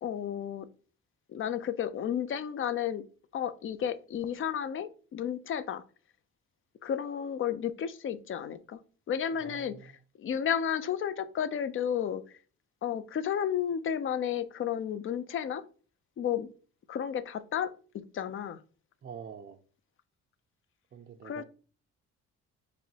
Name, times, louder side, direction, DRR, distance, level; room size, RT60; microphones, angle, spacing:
voice 1, 0.0-0.7 1.3-3.0 3.3-5.8 6.8-8.8 9.1-9.9 10.2-12.2 12.8-15.7 16.2-16.5 16.9-17.7 18.1-18.6 21.2-21.4, left 9 dB, 45° left, 0.5 m, -32 dB
voice 2, 9.4-10.0 19.0-19.6 20.9-21.4, right 7 dB, 35° right, 0.4 m, -46 dB
4.3 x 3.1 x 2.9 m
cardioid pair, 90°, 30 cm